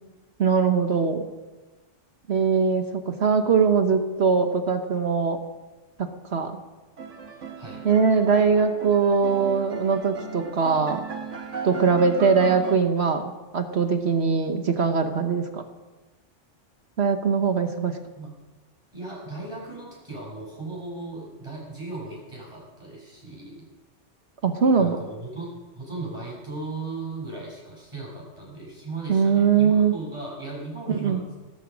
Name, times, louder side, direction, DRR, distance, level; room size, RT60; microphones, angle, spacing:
voice 1, 0.4-1.3 2.3-5.4 6.0-6.5 7.8-11.0 11.6-15.6 17.0-18.0 24.4-25.0 29.1-29.9 30.9-31.2, right 5 dB, 65° right, 7 dB, 1.3 m, -21 dB
sound 1, 7.0-12.8, right 6 dB, 85° right, 1.7 m, -37 dB
voice 2, 18.9-23.6 24.8-31.4, right 3 dB, 25° right, -4 dB, 6.6 m, -37 dB
16.0 x 14.0 x 6.2 m, 1.2 s
omnidirectional pair, 1.2 m